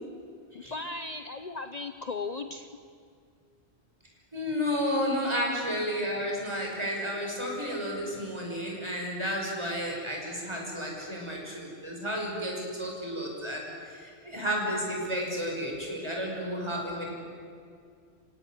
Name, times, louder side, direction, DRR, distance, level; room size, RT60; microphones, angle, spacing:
voice 1, 0.5-2.7 4.9-5.0, left 3 dB, 40° left, 8 dB, 0.9 m, -37 dB
voice 2, 4.3-17.2, equal, 25° right, -1 dB, 6.0 m, -32 dB
27.5 x 17.0 x 9.5 m, 2.3 s
omnidirectional pair, 1.1 m